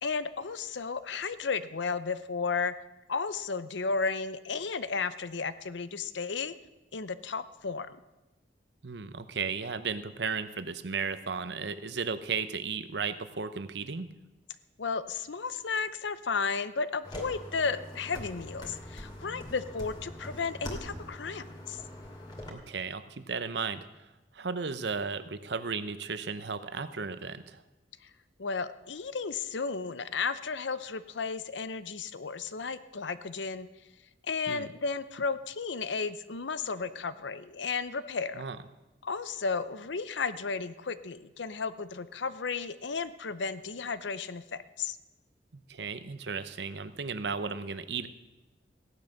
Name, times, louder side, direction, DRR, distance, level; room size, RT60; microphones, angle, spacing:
voice 1, 0.0-2.7 3.1-6.5 6.9-8.0 14.8-21.8 28.0-28.1 28.4-33.7 34.2-38.4 39.0-45.0, left 4 dB, 80° left, 14 dB, 0.7 m, -33 dB
voice 2, 8.8-14.1 22.5-23.8 24.3-27.6 34.5-34.7 38.3-38.6 45.5-48.1, right 5 dB, 70° right, 12 dB, 0.8 m, -35 dB
sound 1, 17.0-22.5, left 1 dB, 25° left, 2.5 m, -43 dB
16.0 x 10.5 x 6.5 m, 1.0 s
head